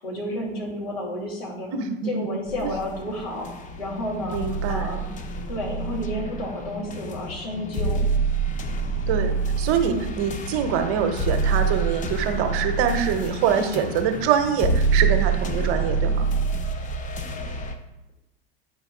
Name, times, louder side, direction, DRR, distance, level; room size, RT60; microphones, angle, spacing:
voice 1, 0.0-1.7 2.0-5.1 5.5-8.1 9.8-10.1 13.4-13.6, left 1 dB, 70° left, -3 dB, 2.7 m, -31 dB
voice 2, 1.7-2.1 2.6-2.7 4.3-4.9 9.1-16.3, right 7 dB, 45° right, 7 dB, 1.0 m, -24 dB
sound 1, 2.5-17.8, right 4 dB, 25° left, 0.8 m, -27 dB
9.4 x 5.0 x 3.8 m, 0.93 s
figure-of-eight pair, 85°, 31 cm